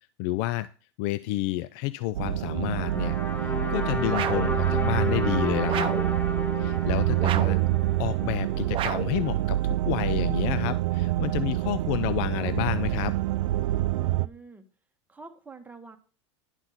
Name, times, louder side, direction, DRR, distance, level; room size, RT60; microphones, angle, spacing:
voice 1, 0.2-0.7 1.0-5.9 6.6-7.6 8.0-13.1, left 16 dB, 55° left, 16 dB, 0.4 m, -30 dB
sound 1, 2.1-14.3, right 15 dB, 85° right, 0.4 m, -26 dB
sound 2, 2.8-9.0, left 3 dB, 10° left, 1.0 m, -33 dB
sound 3, 4.1-4.6 5.7-6.1 7.2-7.7 8.7-9.2, right 10 dB, 35° right, 0.7 m, -31 dB
voice 2, 13.9-14.7 15.1-16.0, right 3 dB, 10° right, 5 dB, 1.3 m, -46 dB
10.5 x 5.8 x 4.1 m, 0.38 s
supercardioid pair, 115°, 16 cm